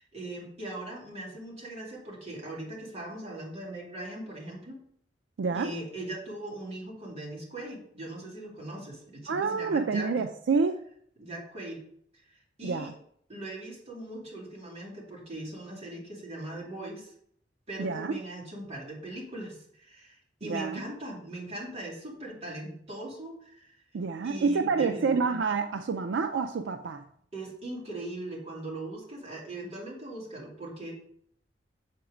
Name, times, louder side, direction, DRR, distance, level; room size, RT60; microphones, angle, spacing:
voice 1, 0.0-4.8 5.5-10.1 11.2-11.8 12.3-12.9 13.3-17.1 17.7-23.7 24.2-25.1 27.3-30.9, right 1 dB, 35° right, -4 dB, 2.6 m, -40 dB
voice 2, 5.4-5.7 9.3-10.8 12.6-12.9 17.8-18.2 20.4-20.8 23.9-27.0, right 4 dB, 80° right, 8 dB, 0.4 m, -28 dB
7.1 x 4.5 x 4.9 m, 0.66 s
head